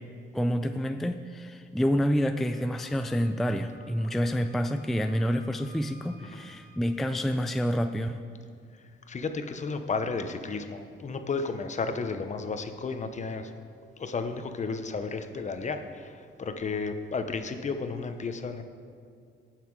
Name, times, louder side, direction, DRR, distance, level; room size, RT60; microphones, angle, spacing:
voice 1, 0.3-8.2, equal, ahead, 7 dB, 0.4 m, -28 dB
Wind instrument woodwind instrument, 2.5-6.8, right 1 dB, 45° right, 1.1 m, -56 dB
voice 2, 9.1-13.5 14.0-18.6, left 4 dB, 35° left, 8 dB, 0.9 m, -33 dB
17.5 x 5.9 x 4.7 m, 2.2 s
cardioid pair, 90°, 20 cm